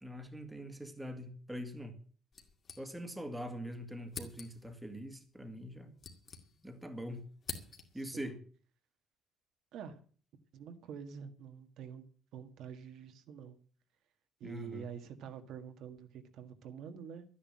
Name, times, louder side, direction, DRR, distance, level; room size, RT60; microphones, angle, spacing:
voice 1, 0.0-2.0 2.8-5.9 6.6-7.3 7.9-8.4 14.4-14.9, equal, 5° right, 1.8 m, -43 dB
sound 1, 2.3-3.3 3.6-3.7 4.1-4.8 5.6-6.9 7.1-8.1, left 5 dB, 35° left, 2.2 m, -47 dB
voice 2, 7.9-8.4 9.7-10.0 10.5-12.1 12.3-13.6 14.4-17.2, right 7 dB, 65° right, 1.7 m, -47 dB
12.5 x 10.0 x 7.5 m
cardioid pair, 170°, 0 cm